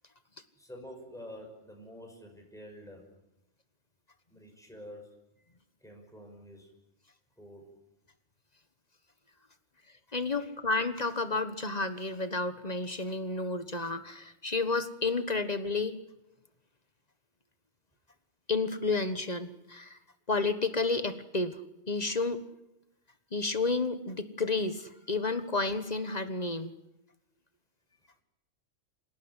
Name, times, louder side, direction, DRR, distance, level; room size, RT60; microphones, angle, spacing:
voice 1, 0.6-3.0 4.3-5.1 5.8-6.7 7.4-7.7 10.3-10.4, equal, ahead, 1 dB, 5.8 m, -48 dB
voice 2, 10.1-16.0 18.5-20.0 20.3-22.4 23.3-26.7, left 3 dB, 35° left, 10 dB, 1.4 m, -31 dB
26.5 x 17.5 x 9.8 m, 0.91 s
omnidirectional pair, 1.3 m